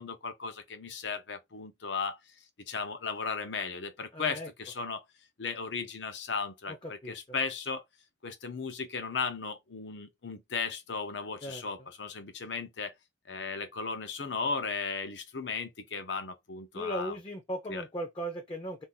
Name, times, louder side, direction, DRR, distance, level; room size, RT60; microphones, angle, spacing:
voice 1, 0.0-2.2 2.7-5.0 5.4-7.8 8.2-12.9 13.3-17.1 17.7-17.8, left 5 dB, 70° left, 0.8 m, -36 dB
voice 2, 4.1-4.5 6.8-7.2 11.4-11.7 16.7-18.8, equal, 25° left, 0.6 m, -37 dB
2.7 x 2.5 x 3.6 m
head